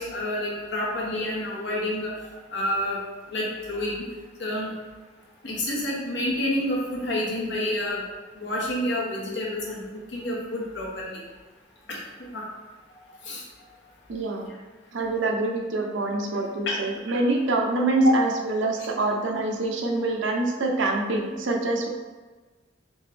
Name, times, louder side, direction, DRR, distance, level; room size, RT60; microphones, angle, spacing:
voice 1, 0.0-2.1 2.5-3.0 3.3-4.1 4.4-4.7 5.4-8.0 8.4-9.8 10.1-11.2 11.9-12.4 13.2-13.4 16.7-16.8 18.0-18.1, left 1 dB, 65° left, -3 dB, 0.9 m, -28 dB
voice 2, 14.1-14.5 14.9-21.9, right 2 dB, 85° right, 2 dB, 0.5 m, -25 dB
3.5 x 2.8 x 3.3 m, 1.3 s
head